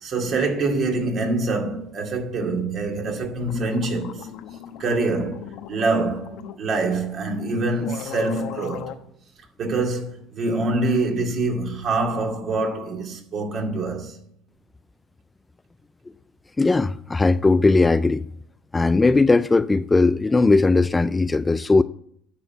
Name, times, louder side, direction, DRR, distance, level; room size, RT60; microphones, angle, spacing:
voice 1, 0.0-4.3 4.8-8.9 9.6-14.2, right 3 dB, 45° right, 2.3 m, -25 dB
sound 1, 3.1-3.2 3.4-6.6 7.4-7.5 7.8-9.0, left 10 dB, 65° left, 1.0 m, -37 dB
voice 2, 16.6-18.2 18.7-21.8, left 3 dB, 15° left, 0.3 m, -18 dB
11.0 x 4.4 x 7.7 m
supercardioid pair, 95°, 0 cm